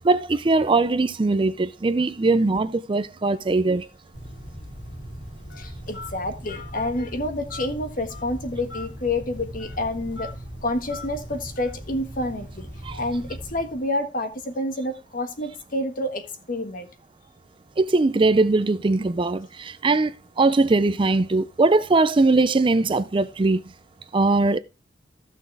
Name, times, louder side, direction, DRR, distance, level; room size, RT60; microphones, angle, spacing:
voice 1, 0.0-3.9 12.8-13.0 17.8-23.6 24.1-24.6, right 3 dB, 30° right, 0.4 m, -21 dB
Telephone, 4.1-13.8, equal, 85° left, 3.1 m, -39 dB
voice 2, 5.6-10.3 10.6-12.7 13.0-16.9, left 1 dB, 50° left, 1.5 m, -28 dB
14.5 x 6.2 x 3.3 m
head